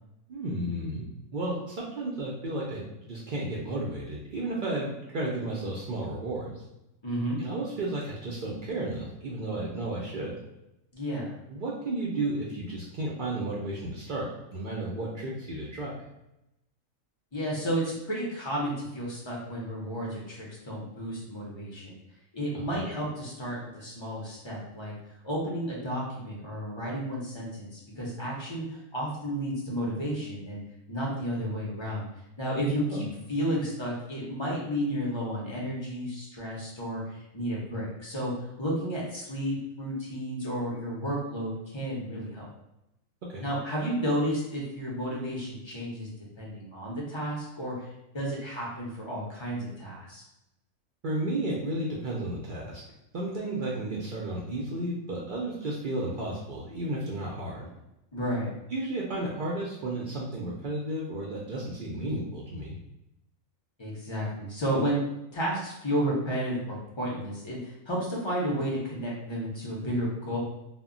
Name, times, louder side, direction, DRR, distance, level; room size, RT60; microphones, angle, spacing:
voice 1, 0.3-1.1 1.3-6.6 7.4-10.4 11.5-15.9 22.7-22.8 32.9-33.0 43.3-43.4 51.0-52.8 53.1-57.7 58.7-62.8, right 1 dB, 70° right, -4 dB, 0.4 m, -33 dB
voice 2, 7.0-7.4 10.9-11.3 17.3-22.0 22.3-24.9 25.2-30.6 30.9-32.0 32.4-38.3 38.6-42.5 43.4-46.1 46.4-47.9 48.1-50.2 58.1-58.5 63.8-65.0 65.3-70.4, equal, 40° left, -5 dB, 0.4 m, -32 dB
2.1 x 2.1 x 3.6 m, 0.88 s
omnidirectional pair, 1.4 m